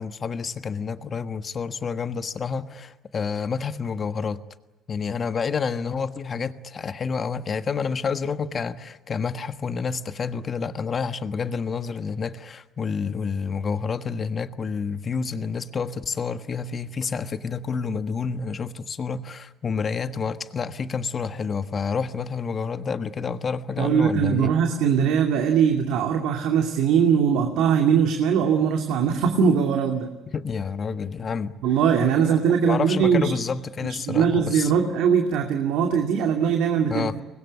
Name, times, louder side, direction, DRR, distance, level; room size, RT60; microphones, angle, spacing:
voice 1, 0.0-4.4 4.9-24.5 30.3-31.6 32.2-32.4 32.6-34.8 36.9-37.2, left 5 dB, 35° left, 1.4 m, -29 dB
voice 2, 23.8-30.1 31.6-33.3 34.1-37.2, right 7 dB, 80° right, 2.5 m, -21 dB
24.5 x 20.5 x 9.9 m
cardioid pair, 115°, 0 cm